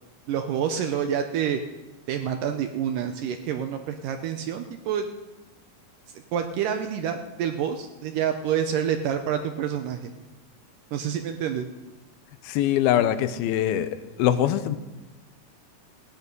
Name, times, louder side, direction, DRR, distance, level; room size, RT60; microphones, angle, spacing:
voice 1, 0.3-1.6 2.1-5.1 6.1-10.1 10.9-11.7, right 8 dB, 75° right, 6 dB, 2.2 m, -28 dB
voice 2, 12.4-13.9 14.2-14.8, left 11 dB, 85° left, 12 dB, 2.7 m, -22 dB
17.5 x 10.5 x 5.4 m, 1.1 s
omnidirectional pair, 4.2 m